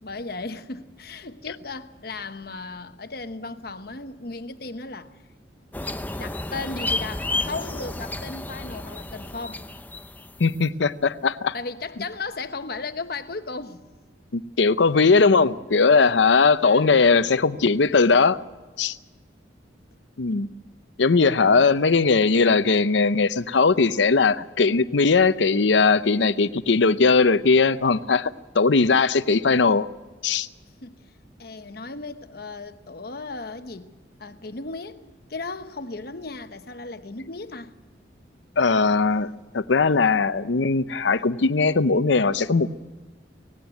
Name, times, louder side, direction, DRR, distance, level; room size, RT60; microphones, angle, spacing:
voice 1, 0.0-5.1 6.2-9.6 11.5-13.8 16.6-17.0 20.3-20.6 30.8-31.1 31.4-33.9 34.2-35.0 35.3-37.7, left 3 dB, 55° left, 1.0 m, -36 dB
sound 1, 5.7-10.6, left 2 dB, 10° left, 0.6 m, -31 dB
voice 2, 10.4-11.5 14.3-18.4 18.8-19.0 20.2-20.5 21.0-29.9 30.2-30.5 38.6-42.7, left 4 dB, 75° left, 0.7 m, -19 dB
19.0 x 17.0 x 9.1 m
head